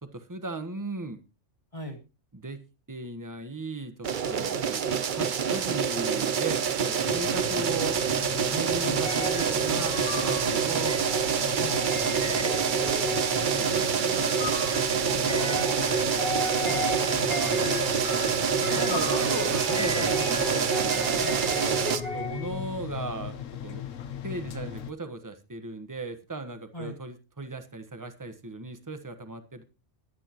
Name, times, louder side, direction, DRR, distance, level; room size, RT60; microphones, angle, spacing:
voice 1, 0.0-1.2 2.3-2.6 2.9-8.0 8.5-11.0 12.2-12.5 13.3-14.6 14.9-15.6 17.4-17.7 18.6-21.1 21.9-23.9 24.2-29.6, right 3 dB, 15° right, 8 dB, 1.3 m, -37 dB
sound 1, 4.0-22.0, right 7 dB, 45° right, 0.8 m, -26 dB
sound 2, 7.0-24.9, left 9 dB, 85° left, 1.3 m, -39 dB
sound 3, 9.0-22.7, left 2 dB, 50° left, 3.0 m, -36 dB
voice 2, 15.3-16.1 16.7-17.2 18.3-20.3 21.2-21.4 26.7-27.0, left 1 dB, 25° left, 1 dB, 2.3 m, -37 dB
22.0 x 9.1 x 3.0 m, 0.30 s
omnidirectional pair, 1.3 m